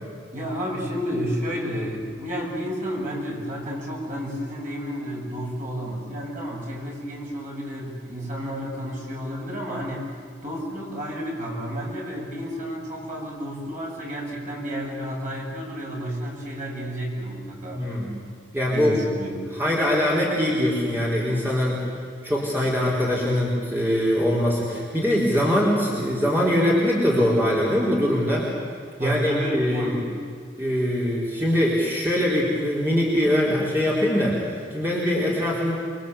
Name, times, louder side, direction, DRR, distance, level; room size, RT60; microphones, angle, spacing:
voice 1, 0.3-10.1 10.4-17.8 18.7-19.5 29.0-30.0, equal, 45° right, -3 dB, 7.9 m, -31 dB
voice 2, 17.7-18.2 18.5-18.9 19.6-21.8 22.2-28.5 29.0-30.0 30.6-35.7, equal, 10° right, -5 dB, 4.2 m, -22 dB
29.5 x 23.0 x 8.3 m, 2.1 s
head